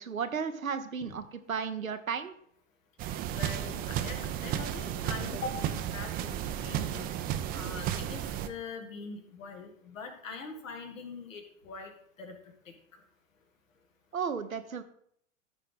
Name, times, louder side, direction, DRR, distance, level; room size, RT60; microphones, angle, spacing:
voice 1, 0.0-2.3 14.1-14.8, right 6 dB, 90° right, 9 dB, 0.9 m, -34 dB
sound 1, 3.0-8.5, right 10 dB, 25° right, 0.5 m, -33 dB
voice 2, 3.3-7.1 7.5-11.9 12.2-12.3, left 4 dB, 70° left, 4 dB, 2.0 m, -42 dB
13.5 x 4.7 x 3.7 m, 0.67 s
figure-of-eight pair, 100°, 40 cm